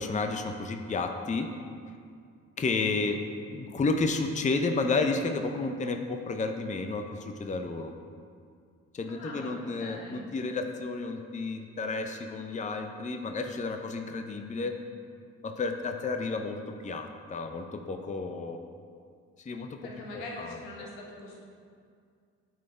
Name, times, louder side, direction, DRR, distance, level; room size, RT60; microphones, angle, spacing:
voice 1, 0.0-1.5 2.6-7.9 8.9-14.7 15.4-18.6 19.5-20.9, left 3 dB, 20° left, 5 dB, 0.6 m, -31 dB
voice 2, 9.1-10.2 19.8-21.5, left 2 dB, 80° left, -2 dB, 1.2 m, -43 dB
9.2 x 4.2 x 3.3 m, 2.2 s
hypercardioid pair, 50°, 37 cm